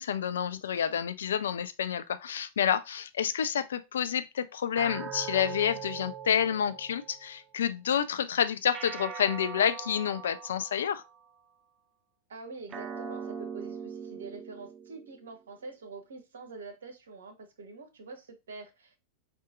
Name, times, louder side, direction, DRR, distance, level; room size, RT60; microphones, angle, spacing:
voice 1, 0.0-11.0, left 8 dB, 65° left, 0.3 m, -29 dB
sound 1, 4.8-7.4 8.7-11.3 12.7-15.3, right 7 dB, 25° right, 0.5 m, -41 dB
voice 2, 12.3-19.0, right 4 dB, 65° right, 0.7 m, -45 dB
3.9 x 2.4 x 2.4 m
figure-of-eight pair, 90°, 0 cm